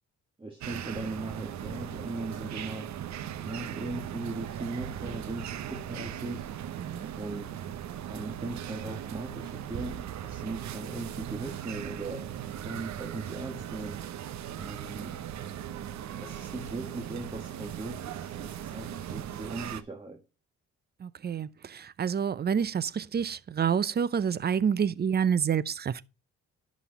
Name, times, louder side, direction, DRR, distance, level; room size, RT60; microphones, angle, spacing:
voice 1, 0.4-2.9 3.4-6.6 7.1-7.6 8.1-12.3 12.6-14.1 14.5-15.2 16.0-20.2, right 2 dB, 15° right, 1.7 m, -39 dB
sound 1, 0.6-19.8, right 10 dB, 65° right, 0.9 m, -38 dB
voice 2, 6.8-7.1 21.0-26.0, right 7 dB, 35° right, 0.6 m, -28 dB
11.0 x 4.2 x 5.3 m
cardioid pair, 90°, 30 cm